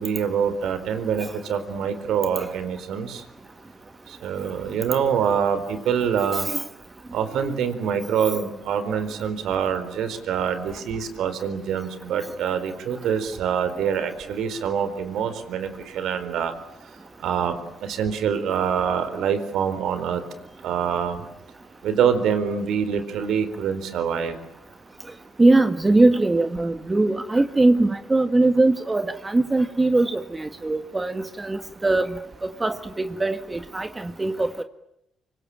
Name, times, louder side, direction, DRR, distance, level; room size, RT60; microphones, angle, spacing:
voice 1, 0.0-3.2 4.1-6.5 7.1-16.5 17.2-20.2 20.6-21.2 21.8-24.4, right 7 dB, 80° right, 11 dB, 4.2 m, -25 dB
voice 2, 25.4-32.1 32.6-34.6, right 2 dB, 20° right, 9 dB, 1.7 m, -21 dB
25.5 x 24.0 x 8.9 m, 0.79 s
cardioid pair, 90°, 0 cm